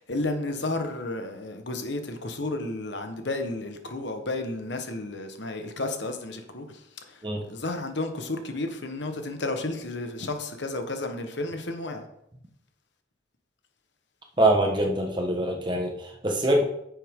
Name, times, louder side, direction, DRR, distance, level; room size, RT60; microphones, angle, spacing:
voice 1, 0.0-12.1, left 2 dB, 65° left, 1.1 m, -32 dB
voice 2, 14.4-16.6, right 1 dB, 25° right, 1.2 m, -24 dB
9.7 x 6.9 x 3.7 m
head